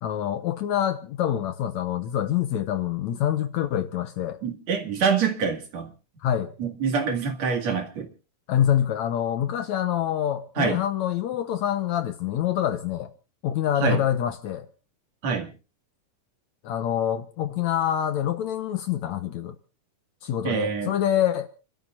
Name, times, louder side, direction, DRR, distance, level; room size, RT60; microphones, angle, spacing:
voice 1, 0.0-4.4 6.2-6.5 8.5-13.1 13.4-14.7 16.6-19.6 20.2-21.5, left 10 dB, 70° left, 2.0 m, -26 dB
voice 2, 4.4-5.9 6.6-8.1 10.6-10.8 13.8-14.0 15.2-15.5 20.4-20.9, right 5 dB, 55° right, 3.2 m, -25 dB
30.0 x 13.0 x 2.4 m
omnidirectional pair, 3.9 m